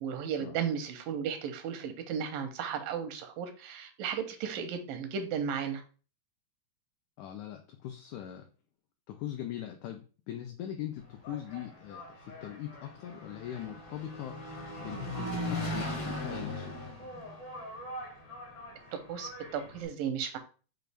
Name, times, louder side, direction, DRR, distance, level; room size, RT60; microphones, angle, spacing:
voice 1, 0.0-5.8 19.1-20.4, right 7 dB, 85° right, 7 dB, 2.4 m, -35 dB
voice 2, 7.2-8.4 9.1-14.4 14.8-16.8, left 11 dB, 85° left, 5 dB, 1.7 m, -41 dB
Engine, 11.0-19.9, left 1 dB, 55° left, 1.3 m, -39 dB
6.2 x 2.5 x 3.3 m, 0.37 s
omnidirectional pair, 3.9 m